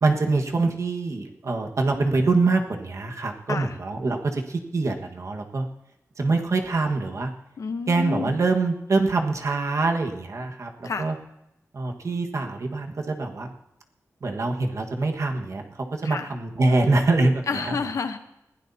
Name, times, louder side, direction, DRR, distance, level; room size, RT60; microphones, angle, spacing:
voice 1, 0.0-5.7 6.2-7.3 7.9-11.2 11.7-13.5 14.2-17.8, right 3 dB, 60° right, 2 dB, 1.6 m, -24 dB
voice 2, 7.6-8.4 10.8-11.1 16.0-16.3 17.5-18.2, left 5 dB, 70° left, 8 dB, 1.0 m, -29 dB
20.5 x 16.0 x 2.8 m, 0.86 s
wide cardioid pair, 140°, 6 cm